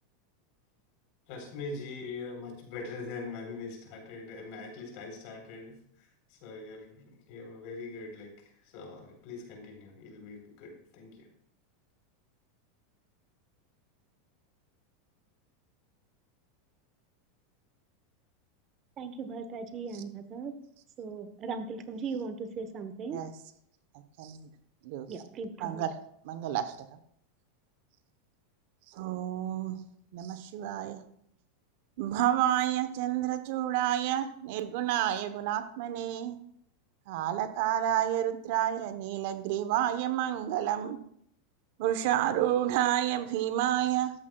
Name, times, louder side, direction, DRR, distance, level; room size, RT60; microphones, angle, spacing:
voice 1, 1.3-11.3, left 3 dB, 60° left, 2 dB, 3.7 m, -43 dB
voice 2, 19.0-20.5 21.0-23.2 25.1-25.9, right 5 dB, 35° right, 9 dB, 1.0 m, -38 dB
voice 3, 24.2-24.5 24.8-25.1 25.6-25.9 26.2-26.8 28.9-29.8 30.1-31.0 32.0-36.4 37.1-41.0 41.8-44.1, right 12 dB, 65° right, 10 dB, 0.9 m, -29 dB
13.5 x 8.7 x 2.3 m, 0.69 s
hypercardioid pair, 115°, 0 cm